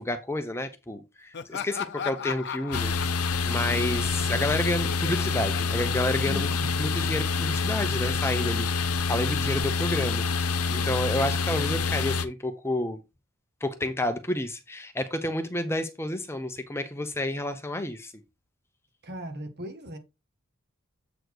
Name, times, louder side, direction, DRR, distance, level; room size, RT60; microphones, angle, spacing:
voice 1, 0.0-6.5 6.8-13.0 13.6-18.1, left 1 dB, 10° left, 0.7 m, -30 dB
Laughter, 1.3-6.8, left 7 dB, 55° left, 0.6 m, -38 dB
sound 1, 2.7-12.3, left 4 dB, 85° left, 0.9 m, -27 dB
voice 2, 6.2-6.8 19.0-20.0, left 1 dB, 50° right, 1.6 m, -38 dB
8.0 x 4.2 x 4.7 m
head